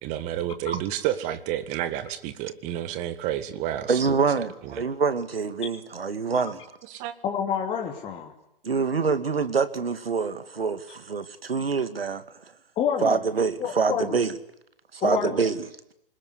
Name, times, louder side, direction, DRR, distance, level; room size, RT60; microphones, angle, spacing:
voice 1, 0.0-4.0 4.6-4.8 6.9-7.1, right 12 dB, 25° right, 1.8 m, -30 dB
voice 2, 3.9-6.6 8.6-12.2 13.0-14.3 14.9-15.6, right 5 dB, 75° right, 2.4 m, -25 dB
voice 3, 7.2-8.3 12.8-13.2 13.6-14.2 15.0-15.4, left 8 dB, 20° left, 2.8 m, -28 dB
25.5 x 21.0 x 9.8 m
figure-of-eight pair, 135°, 29 cm